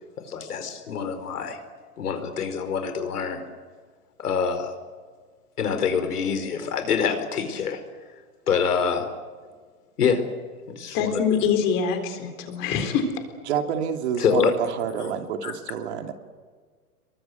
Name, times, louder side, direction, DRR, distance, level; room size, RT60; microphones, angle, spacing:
voice 1, 0.2-1.6 2.0-3.4 4.2-4.8 5.6-7.8 8.5-9.1 10.0-10.3 10.7-11.1 14.2-14.5 15.4-15.5, left 6 dB, 80° left, 9 dB, 4.9 m, -25 dB
voice 2, 10.9-13.0, left 7 dB, 25° left, 6 dB, 3.9 m, -24 dB
voice 3, 13.5-16.1, right 7 dB, 45° right, 5 dB, 2.8 m, -28 dB
27.5 x 23.5 x 8.1 m, 1.5 s
hypercardioid pair, 160°, 45 cm